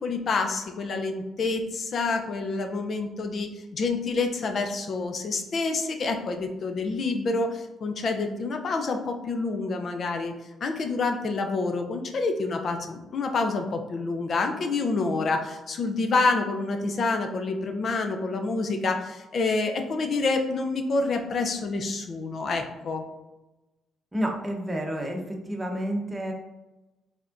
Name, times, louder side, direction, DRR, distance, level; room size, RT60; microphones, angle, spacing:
voice 1, 0.0-10.3 10.6-23.0, left 3 dB, 50° left, 6 dB, 0.5 m, -28 dB
voice 2, 24.1-26.3, equal, 15° right, 1 dB, 0.8 m, -30 dB
4.9 x 3.6 x 2.5 m, 1.0 s
cardioid pair, 90°, 0 cm